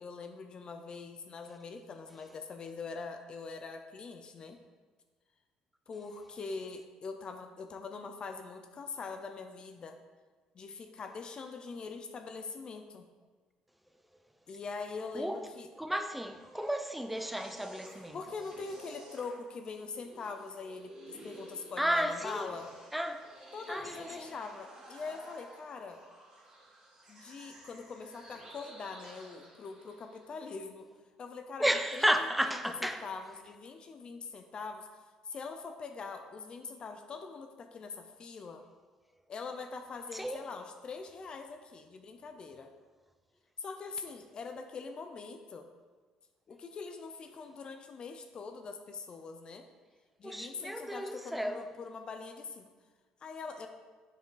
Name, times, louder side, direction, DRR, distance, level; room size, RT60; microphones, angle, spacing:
voice 1, 0.0-4.6 5.9-10.0 10.5-13.1 14.5-15.7 18.1-22.7 23.5-26.0 27.1-30.9 31.2-31.7 32.5-32.6 32.8-34.9 35.3-38.6 39.3-42.7 43.6-45.7 46.5-49.7 50.2-52.7 53.2-53.7, left 4 dB, 40° left, 0.6 m, -43 dB
voice 2, 15.1-15.5 15.8-18.2 21.8-22.5 22.9-23.4 23.7-24.3 31.6-33.1 40.1-40.4 50.2-51.7, equal, 5° right, 0.5 m, -33 dB
sound 1, 16.2-30.4, right 1 dB, 30° right, 2.2 m, -53 dB
7.1 x 7.0 x 4.0 m
cardioid pair, 125°, 2 cm